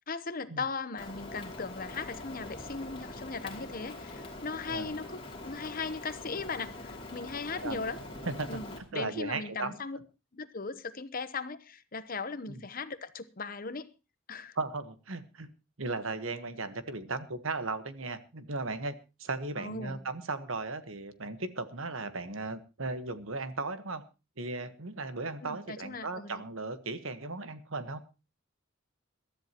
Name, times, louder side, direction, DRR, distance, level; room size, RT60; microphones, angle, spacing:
voice 1, 0.1-8.0 8.5-10.0 10.3-13.9 14.3-14.6 19.6-20.0 25.4-26.4, left 4 dB, 40° left, 0.9 m, -38 dB
Rain, 1.0-8.8, left 2 dB, 25° left, 2.8 m, -44 dB
voice 2, 8.2-8.6 8.9-9.8 12.5-12.7 14.5-15.5 15.8-24.0 24.4-28.0, right 3 dB, 70° right, 1.4 m, -36 dB
22.0 x 13.0 x 3.0 m
head